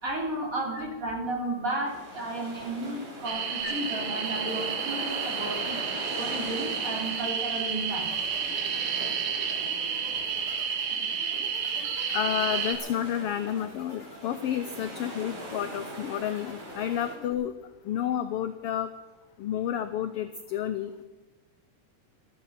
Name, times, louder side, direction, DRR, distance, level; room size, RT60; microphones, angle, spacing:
voice 1, 0.0-5.8 6.1-8.1, right 2 dB, 25° right, -1 dB, 3.8 m, -33 dB
sound 1, 1.9-17.1, right 1 dB, 85° right, 5.5 m, -42 dB
sound 2, 3.2-12.7, right 6 dB, 70° right, 2.8 m, -31 dB
sound 3, 3.6-17.3, left 2 dB, 30° left, 3.9 m, -48 dB
voice 2, 12.1-17.5 17.8-18.9 19.4-21.0, left 10 dB, 75° left, 9 dB, 1.4 m, -31 dB
15.0 x 13.0 x 5.8 m, 1.1 s
omnidirectional pair, 3.4 m